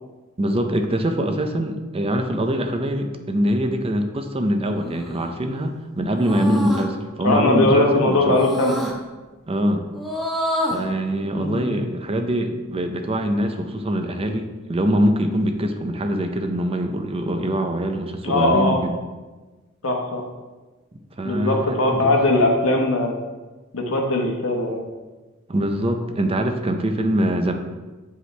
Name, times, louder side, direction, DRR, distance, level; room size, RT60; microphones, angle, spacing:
voice 1, 0.4-8.4 9.5-9.9 10.7-18.9 21.2-22.2 25.5-27.5, right 1 dB, 30° right, 5 dB, 0.6 m, -23 dB
sound 1, 4.8-5.3 6.2-6.9 8.3-8.9 9.9-10.9, equal, ahead, 0.8 m, -27 dB
voice 2, 7.2-8.8 11.4-11.7 18.2-18.8 19.8-20.2 21.2-23.1 23.7-24.8, left 2 dB, 75° left, 1 dB, 1.2 m, -20 dB
7.8 x 5.2 x 3.3 m, 1.2 s
head